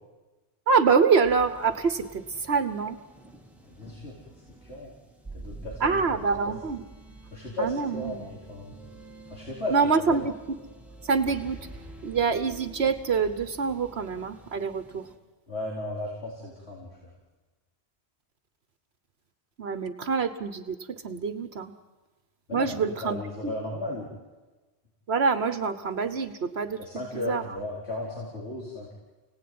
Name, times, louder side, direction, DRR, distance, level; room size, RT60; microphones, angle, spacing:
voice 1, 0.7-3.0 5.8-6.8 7.6-8.2 9.7-10.6 11.0-11.7 12.0-15.1 19.6-21.7 22.5-23.2 23.4-23.5 25.1-27.6, right 5 dB, 65° right, 10 dB, 1.4 m, -26 dB
sound 1, 1.2-15.2, right 2 dB, ahead, 2.8 m, -48 dB
voice 2, 3.7-4.2 4.6-4.9 5.3-6.0 7.3-8.7 9.2-9.8 15.5-17.1 22.5-22.7 23.0-24.1 26.8-28.9, left 1 dB, 80° left, -4 dB, 4.6 m, -35 dB
29.0 x 18.0 x 9.6 m, 1.2 s
omnidirectional pair, 1.1 m